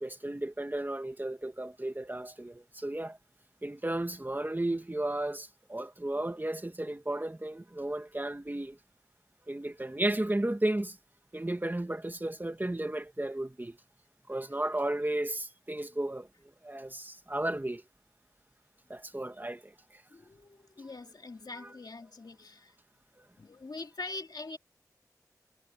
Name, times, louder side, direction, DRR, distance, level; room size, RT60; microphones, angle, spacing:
voice 1, 0.0-3.2 3.6-8.8 9.5-11.0 11.3-13.8 14.3-16.3 16.6-17.8 18.9-20.0 23.2-23.3, right 1 dB, 30° right, 1.7 m, -34 dB
voice 2, 20.1-22.7 23.4-24.6, left 3 dB, 80° left, 2.2 m, -43 dB
wide cardioid pair, 55°, 7 cm